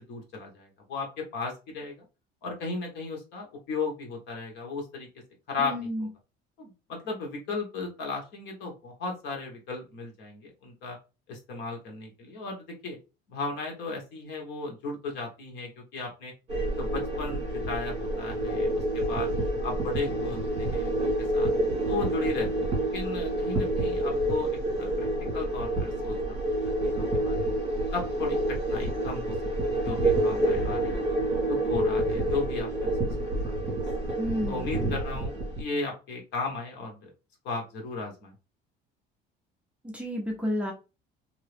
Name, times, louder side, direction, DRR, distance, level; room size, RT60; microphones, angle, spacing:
voice 1, 0.1-1.9 2.4-5.1 5.5-6.1 6.6-11.0 11.3-13.0 13.3-16.3 16.8-19.3 19.6-21.5 21.9-22.7 22.9-25.1 25.3-26.1 26.5-27.6 27.9-28.4 28.7-29.3 29.6-31.1 31.5-33.1 33.4-33.7 34.5-37.1 37.4-38.3, left 3 dB, 65° left, 1 dB, 1.3 m, -35 dB
voice 2, 5.6-6.1 34.2-34.6 39.9-40.7, equal, 5° right, 0 dB, 0.5 m, -30 dB
sound 1, 16.5-35.6, right 1 dB, 30° right, 1.5 m, -28 dB
2.9 x 2.8 x 3.3 m, 0.30 s
cardioid pair, 175°, 20 cm